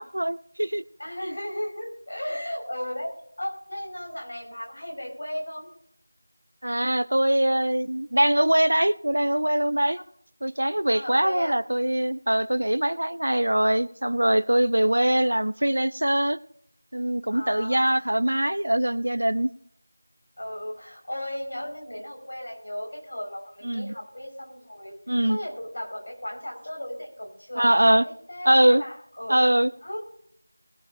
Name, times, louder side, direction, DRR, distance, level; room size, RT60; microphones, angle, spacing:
voice 1, 0.0-0.8 1.2-1.3 6.6-10.0 10.4-16.4 16.9-19.5 23.6-23.9 25.1-25.4 27.6-28.0 28.4-28.8 29.3-29.7, right 1 dB, 65° right, 15 dB, 0.8 m, -22 dB
voice 2, 1.0-5.7 6.7-6.8 10.9-11.6 14.8-15.0 17.3-18.2 20.4-25.0 25.3-28.0 28.3-29.6 29.8-30.0, left 1 dB, 45° left, 0 dB, 5.5 m, -35 dB
21.5 x 9.0 x 2.7 m, 0.69 s
figure-of-eight pair, 175°, 0 cm